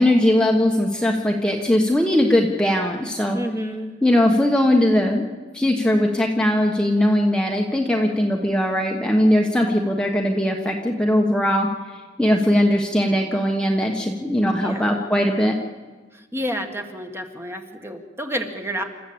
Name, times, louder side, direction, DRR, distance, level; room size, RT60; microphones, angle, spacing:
voice 1, 0.0-3.4 4.0-5.2 5.5-11.7 12.2-15.6, left 1 dB, 5° left, 0 dB, 1.4 m, -19 dB
voice 2, 3.3-3.9 14.6-15.0 16.1-18.8, equal, 15° right, 4 dB, 1.8 m, -30 dB
28.0 x 13.5 x 8.7 m, 1.3 s
head